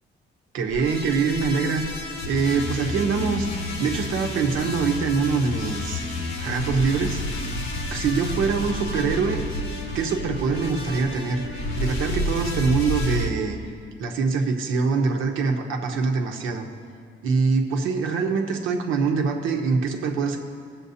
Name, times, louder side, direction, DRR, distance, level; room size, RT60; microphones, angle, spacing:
voice 1, 0.5-1.9 2.3-7.2 7.9-9.4 9.9-13.6 14.0-16.7 17.2-20.4, right 5 dB, 85° right, 3 dB, 1.0 m, -24 dB
athmo sound, 0.7-13.3, left 1 dB, 85° left, 1.4 m, -30 dB
18.5 x 7.4 x 2.8 m, 2.2 s
cardioid pair, 90°, 20 cm